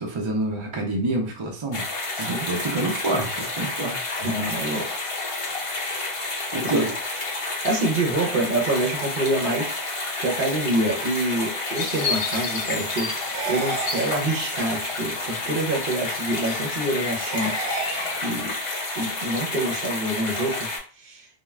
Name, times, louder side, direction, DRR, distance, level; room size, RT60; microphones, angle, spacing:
voice 1, 0.0-1.8 2.2-4.0 6.5-6.9, right 2 dB, 40° right, 1 dB, 0.4 m, -27 dB
sound 1, 1.7-20.8, left 2 dB, 35° left, 0.6 m, -30 dB
voice 2, 2.1-2.5 4.2-5.0 6.7-6.9 7.6-17.9 18.2-18.5 18.9-21.3, right 1 dB, 55° right, 0 dB, 0.8 m, -27 dB
sound 2, 11.8-18.4, left 5 dB, 75° left, 0.9 m, -35 dB
sound 3, 13.3-14.7 17.3-18.7, right 5 dB, 90° right, 0.9 m, -33 dB
2.3 x 2.2 x 3.1 m, 0.40 s
omnidirectional pair, 1.1 m